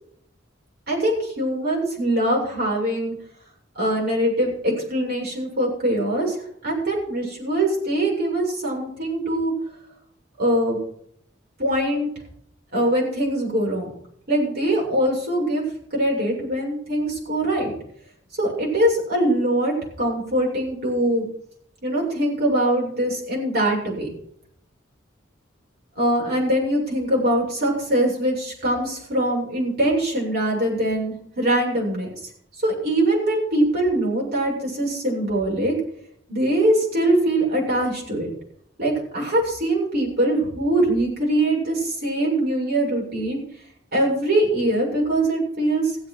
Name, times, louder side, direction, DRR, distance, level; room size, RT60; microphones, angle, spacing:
voice 1, 0.9-3.1 3.8-6.4 6.6-9.5 10.4-10.8 11.6-12.1 12.7-13.9 14.3-15.6 15.9-17.7 18.3-21.3 21.8-24.1 26.0-32.1 32.6-35.8 36.3-38.3 38.8-43.4 43.9-46.1, right 1 dB, 55° right, -2 dB, 7.4 m, -22 dB
16.0 x 8.0 x 6.3 m, 0.66 s
head